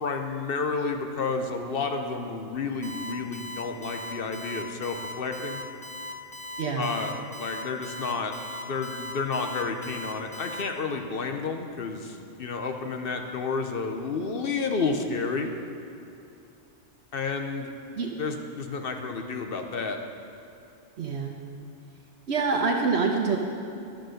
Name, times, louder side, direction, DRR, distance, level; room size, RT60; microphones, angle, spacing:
voice 1, 0.0-5.6 6.8-8.3 8.6-15.5 17.1-17.7 18.2-20.0, left 4 dB, 55° left, 5 dB, 0.8 m, -31 dB
Alarm, 2.8-10.6, left 1 dB, 5° left, 0.7 m, -39 dB
voice 2, 6.6-6.9 18.0-18.1 21.0-21.3 22.3-23.4, right 4 dB, 65° right, 1 dB, 1.0 m, -25 dB
11.5 x 6.3 x 6.4 m, 2.7 s
omnidirectional pair, 1.3 m